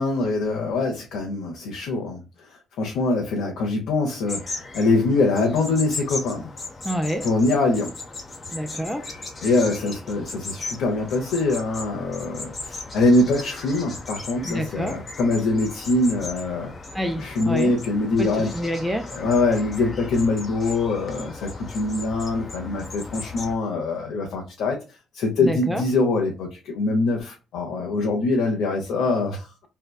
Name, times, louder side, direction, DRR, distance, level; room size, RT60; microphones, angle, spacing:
voice 1, 0.0-2.2 2.8-6.5 7.2-7.9 9.4-16.7 17.2-18.5 19.1-24.8 25.1-29.5, left 2 dB, 80° left, 0.6 m, -23 dB
sound 1, 4.3-23.5, left 3 dB, 30° left, 0.7 m, -37 dB
voice 2, 6.8-7.3 8.5-9.1 14.4-15.0 16.9-17.8 18.2-19.2 25.4-25.8, equal, ahead, 0.4 m, -28 dB
2.7 x 2.1 x 2.2 m
cardioid pair, 100°, 0 cm